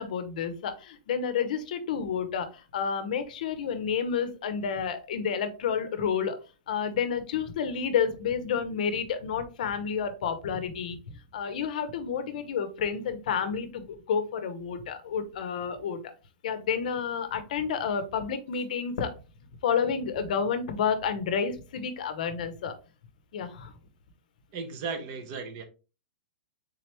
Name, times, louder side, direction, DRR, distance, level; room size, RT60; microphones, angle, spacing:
voice 1, 0.0-6.4 6.7-16.0 16.4-19.1 19.6-22.8 23.3-23.7, left 7 dB, 60° left, 10 dB, 0.7 m, -30 dB
voice 2, 24.5-25.6, right 5 dB, 35° right, 8 dB, 0.6 m, -35 dB
3.7 x 3.2 x 3.0 m, 0.32 s
supercardioid pair, 165°, 5 cm